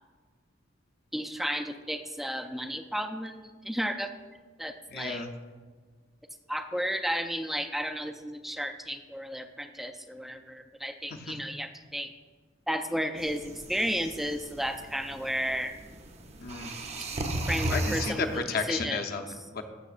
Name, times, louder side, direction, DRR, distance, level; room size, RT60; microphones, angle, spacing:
voice 1, 1.1-4.1 4.6-5.3 6.5-12.1 12.7-15.8 17.5-19.0, equal, ahead, 7 dB, 0.3 m, -33 dB
voice 2, 4.9-5.3 11.1-11.4 16.4-16.8 17.7-19.6, left 4 dB, 55° left, 6 dB, 0.7 m, -33 dB
sound 1, 13.2-18.4, right 1 dB, 35° right, 0.6 m, -36 dB
13.5 x 6.1 x 2.5 m, 1.5 s
head